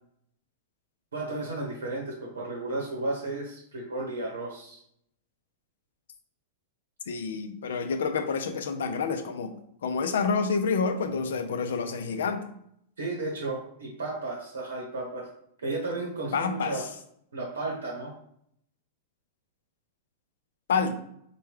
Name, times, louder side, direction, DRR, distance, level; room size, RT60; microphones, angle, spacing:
voice 1, 1.1-4.8 13.0-15.3 15.6-16.8 17.3-18.1, right 2 dB, 85° right, -1 dB, 0.7 m, -33 dB
voice 2, 7.1-9.5 9.8-12.4 16.3-16.7 20.7-21.0, left 5 dB, 75° left, 7 dB, 0.4 m, -28 dB
3.3 x 2.2 x 3.3 m, 0.71 s
hypercardioid pair, 105°, 0 cm